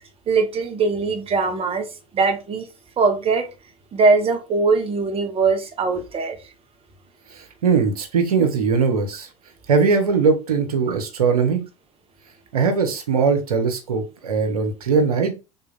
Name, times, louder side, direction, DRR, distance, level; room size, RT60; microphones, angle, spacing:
voice 1, 0.3-2.7 3.0-3.5 3.9-6.4, right 4 dB, 30° right, 5 dB, 1.1 m, -21 dB
voice 2, 7.3-9.3 9.7-11.6 12.5-15.3, right 5 dB, 80° right, 4 dB, 1.0 m, -20 dB
3.6 x 2.7 x 4.0 m, 0.29 s
figure-of-eight pair, 75°, 19 cm